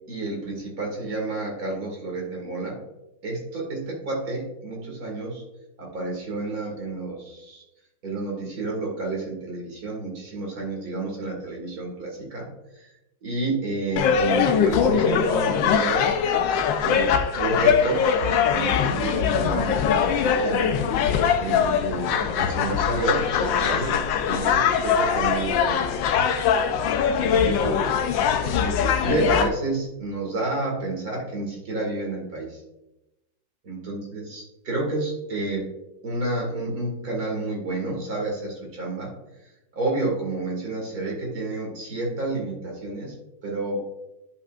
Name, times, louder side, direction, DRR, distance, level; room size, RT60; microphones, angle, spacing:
voice 1, 0.1-2.8 3.2-5.4 5.8-7.6 8.0-12.5 12.7-12.9 13.2-16.1 16.8-17.1 17.4-20.7 21.4-26.3 27.1-27.8 28.6-32.6 33.7-35.7 36.0-39.1 39.7-43.1 43.4-43.8, right 2 dB, 45° right, -1 dB, 2.4 m, -30 dB
sound 1, 14.0-29.5, left 7 dB, 75° left, 1.3 m, -22 dB
11.0 x 5.6 x 2.5 m, 0.94 s
omnidirectional pair, 2.2 m